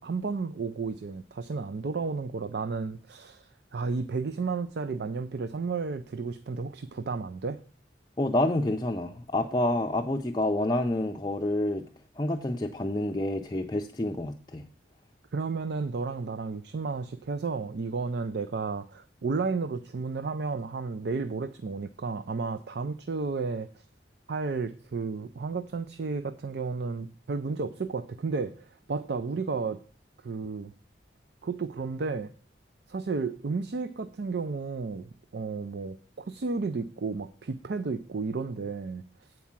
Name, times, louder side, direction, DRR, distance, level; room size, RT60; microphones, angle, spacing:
voice 1, 0.0-7.6 15.3-23.7 24.3-29.8 30.2-30.7 31.4-32.3 32.9-39.0, right 4 dB, 60° right, 12 dB, 0.4 m, -32 dB
voice 2, 8.2-11.8 12.2-14.6, left 1 dB, 20° left, 2 dB, 0.5 m, -28 dB
8.4 x 4.6 x 7.3 m, 0.43 s
head